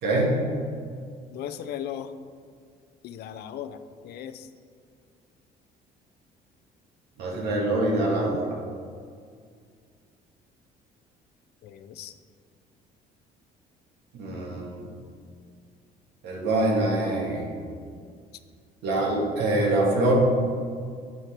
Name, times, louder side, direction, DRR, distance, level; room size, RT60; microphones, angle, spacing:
voice 1, 0.0-0.4 7.2-8.5 14.1-14.9 16.2-17.5 18.8-20.1, right 2 dB, 75° right, -3 dB, 2.2 m, -24 dB
voice 2, 1.3-2.1 3.0-3.8 4.0-4.5 11.6-12.1, left 10 dB, 70° left, 11 dB, 0.5 m, -37 dB
8.0 x 4.4 x 6.0 m, 2.1 s
cardioid pair, 110°, 17 cm